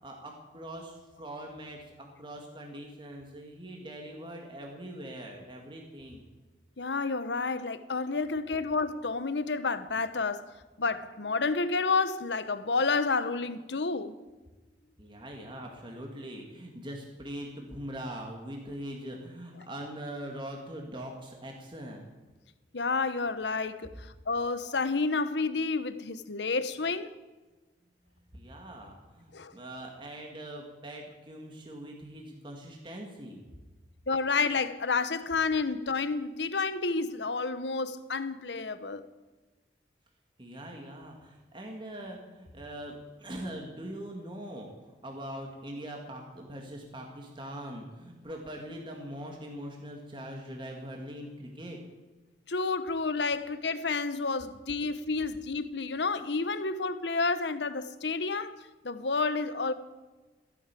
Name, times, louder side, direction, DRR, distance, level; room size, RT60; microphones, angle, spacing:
voice 1, 0.0-6.2 15.0-22.1 28.3-33.4 40.4-51.8, right 1 dB, 30° right, 2.1 m, -42 dB
voice 2, 6.8-10.5 10.8-14.1 22.7-23.9 24.3-27.1 29.3-29.5 34.1-39.0 52.5-58.6 58.8-59.7, left 4 dB, 75° left, 1.0 m, -30 dB
15.5 x 11.0 x 8.4 m
head